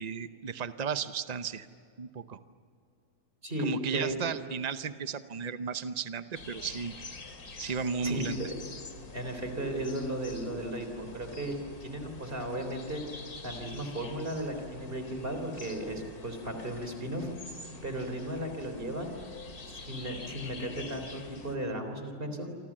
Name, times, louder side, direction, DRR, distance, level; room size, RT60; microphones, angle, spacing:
voice 1, 0.0-1.7 2.0-2.4 3.6-6.9 7.6-8.4, right 6 dB, 75° right, 11 dB, 0.3 m, -34 dB
voice 2, 3.4-4.3 8.0-8.6 9.1-11.6 11.8-13.0 13.4-17.3 17.8-19.1 19.7-22.5, right 1 dB, 30° right, 6 dB, 3.9 m, -35 dB
sound 1, 6.3-21.6, left 3 dB, 55° left, 2.9 m, -46 dB
28.5 x 25.5 x 7.5 m, 2.4 s
omnidirectional pair, 2.0 m